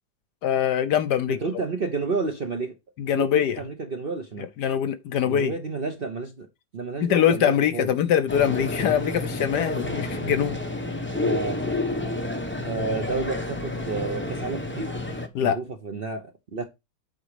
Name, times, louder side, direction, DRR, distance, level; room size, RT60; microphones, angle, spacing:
voice 1, 0.4-1.4 3.0-3.6 4.6-5.5 7.0-10.6 15.3-15.6, left 9 dB, 70° left, 1.2 m, -23 dB
voice 2, 1.3-2.7 3.1-4.5 5.2-6.5 6.7-7.9 10.0-10.3 11.1-11.6 12.6-15.1 15.4-16.7, right 4 dB, 45° right, 0.8 m, -31 dB
sound 1, 8.3-15.3, left 2 dB, 10° left, 0.5 m, -30 dB
8.2 x 4.0 x 5.0 m
omnidirectional pair, 2.0 m